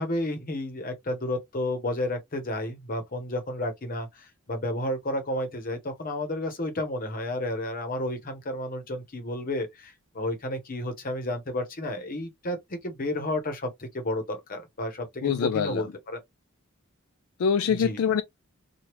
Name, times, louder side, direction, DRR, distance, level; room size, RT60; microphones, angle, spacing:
voice 1, 0.0-16.2 17.8-18.0, left 1 dB, 40° left, 0.9 m, -31 dB
voice 2, 15.2-15.9 17.4-18.2, left 7 dB, 70° left, 0.3 m, -24 dB
3.0 x 2.3 x 3.1 m
head